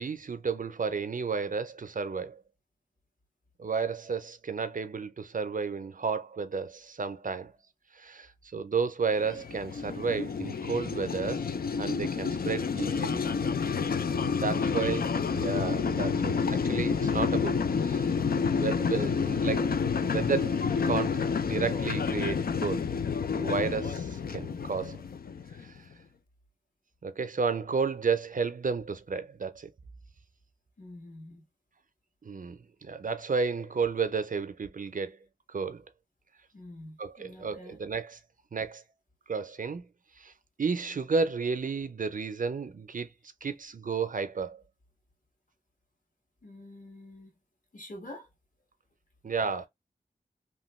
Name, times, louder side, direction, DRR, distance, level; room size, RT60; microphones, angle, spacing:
voice 1, 0.0-2.4 3.6-7.5 7.9-11.5 11.8-13.2 14.2-15.1 15.3-18.1 18.5-19.7 20.1-22.8 23.4-25.0 25.6-25.8 27.0-29.7 32.2-35.2 35.5-35.8 37.0-38.2 38.5-38.8 39.3-39.9 40.2-40.3 40.6-43.1 43.4-44.6 49.2-49.7, right 5 dB, 60° right, 0.5 m, -32 dB
sound 1, 9.1-25.8, left 5 dB, 75° left, 0.4 m, -29 dB
voice 2, 30.8-31.4 36.5-37.8 46.4-47.3 47.7-48.3, left 1 dB, 55° left, 1.6 m, -47 dB
2.9 x 2.3 x 3.1 m
wide cardioid pair, 50°, 16 cm